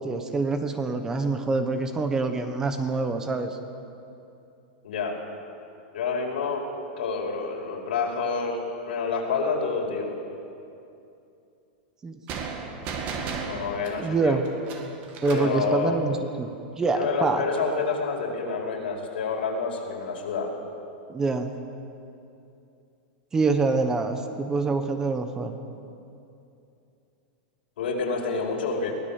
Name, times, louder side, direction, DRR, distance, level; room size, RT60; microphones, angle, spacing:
voice 1, 0.0-3.6 12.0-12.2 14.0-14.4 15.2-17.4 21.1-21.6 23.3-25.5, right 3 dB, 10° right, 7 dB, 1.0 m, -26 dB
voice 2, 4.8-5.2 5.9-6.7 7.0-10.1 13.5-14.4 15.2-16.0 16.9-20.5 27.8-28.9, left 4 dB, 90° left, 0 dB, 5.1 m, -28 dB
sound 1, 12.3-15.6, right 5 dB, 30° right, 2.0 m, -35 dB
23.5 x 17.0 x 7.3 m, 2.7 s
supercardioid pair, 170°, 5 cm